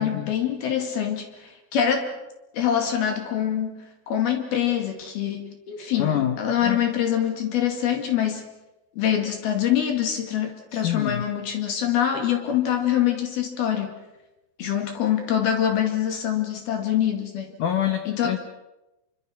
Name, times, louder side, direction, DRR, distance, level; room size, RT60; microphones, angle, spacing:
voice 1, 0.0-2.1 2.5-8.5 9.0-14.0 14.6-17.5 18.1-18.4, left 9 dB, 60° left, 4 dB, 3.8 m, -25 dB
voice 2, 6.0-6.8 10.7-11.2 17.6-18.5, left 10 dB, 75° left, 7 dB, 1.8 m, -26 dB
27.5 x 24.0 x 6.0 m, 0.98 s
omnidirectional pair, 5.4 m